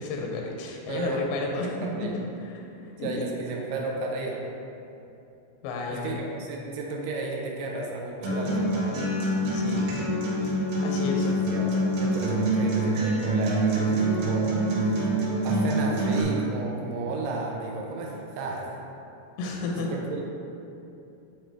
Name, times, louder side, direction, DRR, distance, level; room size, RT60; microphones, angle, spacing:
voice 1, 0.0-2.1 2.4-2.6 3.0-3.2 5.6-6.2 9.5-10.0 10.4-10.5 10.8-11.3 19.4-19.9, left 3 dB, 90° left, 0 dB, 2.9 m, -32 dB
voice 2, 0.9-1.2 1.5-2.2 3.0-4.4 5.9-9.0 11.2-14.6 14.9-18.7 19.8-20.2, right 3 dB, 80° right, -1 dB, 2.4 m, -33 dB
Acoustic guitar, 8.2-16.2, right 1 dB, 60° right, 2.5 m, -25 dB
8.9 x 4.3 x 3.4 m, 2.8 s
omnidirectional pair, 4.9 m